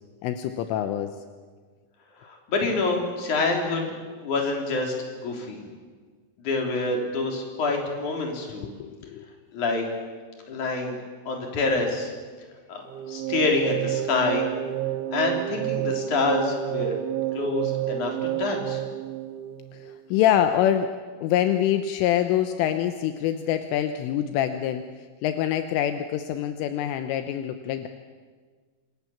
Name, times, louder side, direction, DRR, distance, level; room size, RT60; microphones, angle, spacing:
voice 1, 0.2-1.2 8.6-9.3 19.7-21.0 21.2-24.9 25.2-27.9, left 11 dB, 80° left, 8 dB, 3.4 m, -25 dB
voice 2, 2.2-4.0 4.2-5.6 6.4-8.7 9.5-9.9 10.5-11.0 11.3-12.1 12.7-14.5 15.1-17.0 17.3-18.1 18.4-18.8, left 3 dB, 40° left, 1 dB, 4.7 m, -27 dB
sound 1, 12.9-20.1, right 13 dB, 75° right, 3.3 m, -30 dB
27.0 x 23.5 x 7.3 m, 1.5 s
omnidirectional pair, 5.8 m